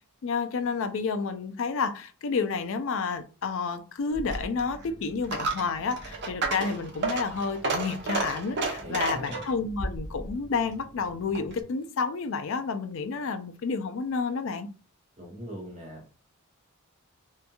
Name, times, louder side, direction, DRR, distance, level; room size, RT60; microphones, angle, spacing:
voice 1, 0.2-14.7, left 5 dB, 60° left, 0.3 m, -30 dB
Coin (dropping), 4.1-11.6, right 3 dB, 50° right, 0.6 m, -33 dB
voice 2, 8.8-9.4 15.2-16.0, equal, 30° right, 0.9 m, -40 dB
2.8 x 2.5 x 2.3 m
head